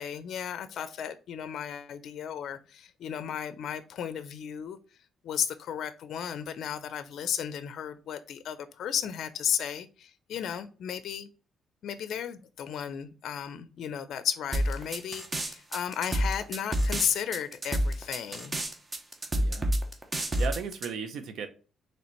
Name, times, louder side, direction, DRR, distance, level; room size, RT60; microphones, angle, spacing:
voice 1, 0.0-4.8 5.2-11.3 11.8-18.5, left 9 dB, 70° left, 0.4 m, -34 dB
sound 1, 14.5-20.9, right 1 dB, 25° right, 0.8 m, -28 dB
voice 2, 19.4-19.7 20.4-21.5, right 6 dB, 75° right, 0.6 m, -35 dB
4.2 x 3.1 x 3.0 m
cardioid pair, 90°, 0 cm